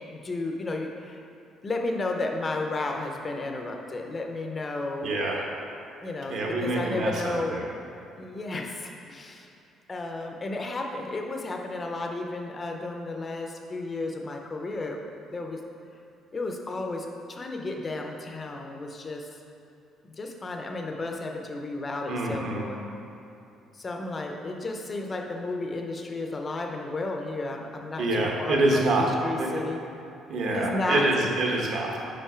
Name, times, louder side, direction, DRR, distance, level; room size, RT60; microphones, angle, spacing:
voice 1, 0.1-1.2 1.6-5.1 6.0-7.5 8.2-9.5 9.9-15.0 15.2-15.6 16.3-19.3 20.1-22.8 23.7-29.8 30.5-31.1, left 2 dB, 20° left, 2 dB, 0.6 m, -33 dB
voice 2, 5.0-5.4 6.3-7.7 22.1-22.6 28.0-29.1 29.4-29.6 30.3-32.0, right 2 dB, 50° right, -1 dB, 1.1 m, -26 dB
5.5 x 5.2 x 4.9 m, 2.8 s
cardioid pair, 165°, 0 cm